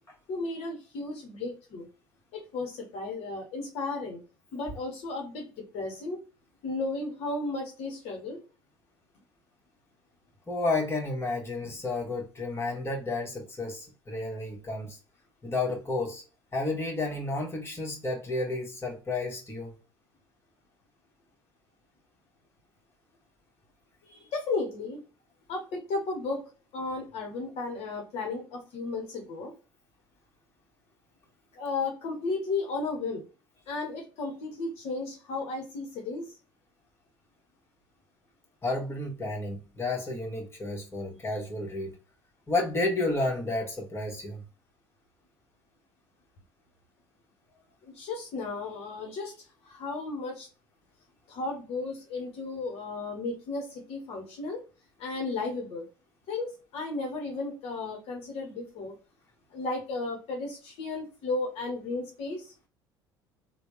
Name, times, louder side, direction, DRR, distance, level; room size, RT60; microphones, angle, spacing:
voice 1, 0.3-1.9 2.3-4.2 4.5-6.2 6.6-8.4 24.0-25.0 25.5-29.5 31.5-33.2 33.7-36.3 47.8-49.3 49.6-50.5 51.3-54.6 55.0-55.9 56.3-58.9 59.5-62.5, left 3 dB, 55° left, 1.0 m, -34 dB
voice 2, 10.5-15.0 15.4-16.2 16.5-19.7 38.6-42.0 42.5-44.4, left 2 dB, 20° left, 1.4 m, -31 dB
3.3 x 2.2 x 3.1 m
hypercardioid pair, 65°, 12 cm